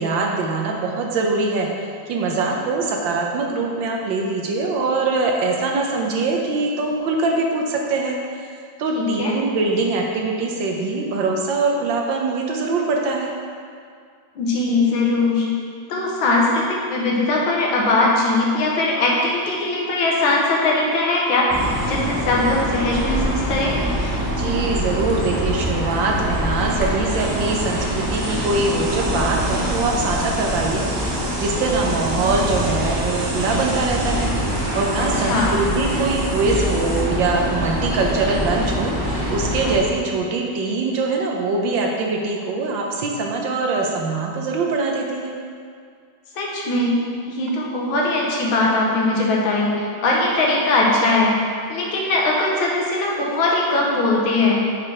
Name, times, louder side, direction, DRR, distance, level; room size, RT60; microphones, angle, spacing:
voice 1, 0.0-8.2 8.4-8.5 8.8-13.3 24.3-38.9 39.3-45.3, right 3 dB, 70° right, 0 dB, 1.4 m, -23 dB
voice 2, 8.9-9.3 14.4-15.5 15.9-21.5 21.9-23.8 35.0-35.5 46.4-51.4 51.7-54.6, left 2 dB, 80° left, -2 dB, 1.8 m, -20 dB
sound 1, 21.5-39.8, equal, 25° right, 0.4 m, -24 dB
sound 2, 27.1-37.0, right 2 dB, 85° right, 1.9 m, -34 dB
5.9 x 4.8 x 4.8 m, 2.1 s
omnidirectional pair, 2.2 m